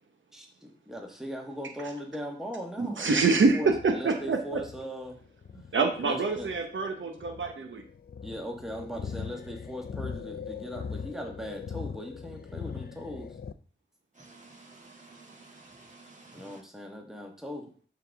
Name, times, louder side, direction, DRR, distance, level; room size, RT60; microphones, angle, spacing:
voice 1, 0.3-5.2 6.0-6.5 8.2-13.4 16.3-17.7, equal, ahead, 1 dB, 1.3 m, -39 dB
voice 2, 3.0-4.6 5.7-7.8, right 4 dB, 80° right, 4 dB, 1.0 m, -26 dB
sound 1, 3.2-13.5, left 6 dB, 50° left, 0.5 m, -41 dB
voice 3, 14.1-16.6, right 4 dB, 40° right, -2 dB, 2.5 m, -44 dB
11.5 x 4.0 x 3.5 m, 0.41 s
wide cardioid pair, 85°, 20 cm